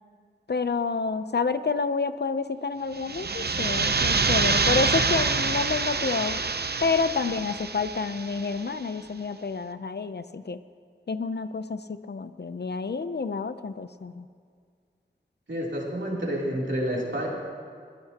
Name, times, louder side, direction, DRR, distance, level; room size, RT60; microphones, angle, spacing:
voice 1, 0.5-6.4 6.8-10.6 11.1-14.3, left 4 dB, 60° left, 11 dB, 0.6 m, -29 dB
sound 1, 3.0-8.6, right 4 dB, 60° right, 0.7 m, -26 dB
voice 2, 15.5-17.3, equal, 80° right, -4 dB, 3.3 m, -29 dB
21.5 x 15.5 x 2.9 m, 2.1 s
wide cardioid pair, 50°, 19 cm